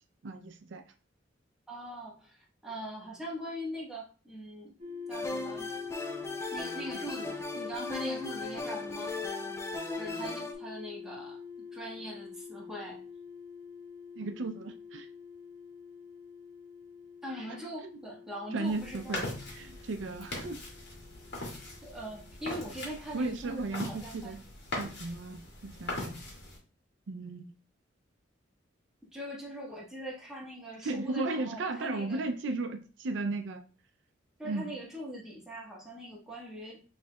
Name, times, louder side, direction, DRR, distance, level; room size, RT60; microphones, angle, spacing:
voice 1, 0.2-0.8 14.2-15.1 18.5-19.3 19.5-20.6 23.1-24.4 24.8-26.2 27.1-27.5 30.8-33.6 34.4-34.8, right 3 dB, 75° right, 0.4 m, -35 dB
voice 2, 1.7-4.7 5.1-5.7 6.5-9.1 10.0-11.4 11.7-13.0 17.2-19.2 21.8-24.4 29.1-32.2 34.4-36.8, equal, 5° right, 1.3 m, -41 dB
sound 1, 4.8-22.7, left 6 dB, 40° right, 1.5 m, -45 dB
sound 2, 5.1-10.5, left 2 dB, 15° left, 0.5 m, -38 dB
sound 3, 18.6-26.6, left 2 dB, 60° left, 1.7 m, -41 dB
6.2 x 3.2 x 2.2 m
head